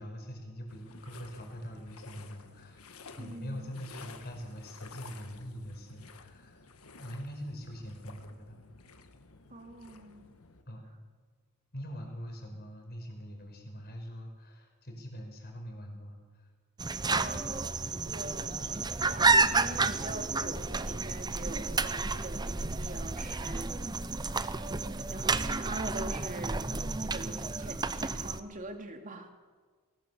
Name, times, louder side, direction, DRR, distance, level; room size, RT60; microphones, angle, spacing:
voice 1, 0.0-6.6 7.0-8.6 10.7-11.0 11.7-16.5, equal, 45° left, 3 dB, 4.9 m, -43 dB
sound 1, 0.7-10.6, left 4 dB, 75° left, 1.5 m, -53 dB
voice 2, 3.2-3.7 9.5-10.3 17.1-17.8 18.0-23.7 24.3-24.4 24.8-26.7 27.0-29.3, right 2 dB, 35° right, 5 dB, 2.4 m, -43 dB
sound 2, 16.8-28.4, right 3 dB, 20° right, 0.7 m, -31 dB
20.5 x 18.5 x 7.1 m, 1.5 s
head